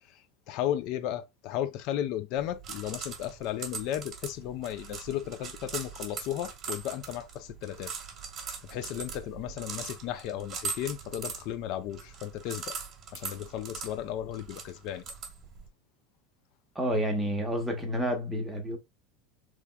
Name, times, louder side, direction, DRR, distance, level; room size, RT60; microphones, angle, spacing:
voice 1, 0.0-7.9 8.6-12.8 13.1-15.1, left 11 dB, 60° left, 0.4 m, -35 dB
sound 1, 2.4-15.7, right 5 dB, 35° right, 1.2 m, -41 dB
voice 2, 16.7-18.8, equal, 5° right, 1.0 m, -29 dB
3.4 x 3.0 x 2.2 m
supercardioid pair, 115°, 0 cm